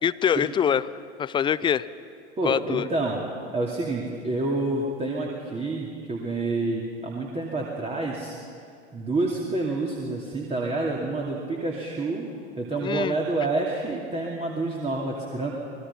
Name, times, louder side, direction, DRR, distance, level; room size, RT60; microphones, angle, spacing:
voice 1, 0.0-0.8 1.2-1.9 2.4-2.9 12.8-13.2, left 8 dB, 15° left, 17 dB, 0.4 m, -24 dB
voice 2, 2.4-3.3 3.5-8.3 8.9-12.3 12.6-15.5, right 2 dB, 20° right, -3 dB, 2.7 m, -28 dB
26.0 x 19.5 x 5.6 m, 2.3 s
figure-of-eight pair, 85°, 34 cm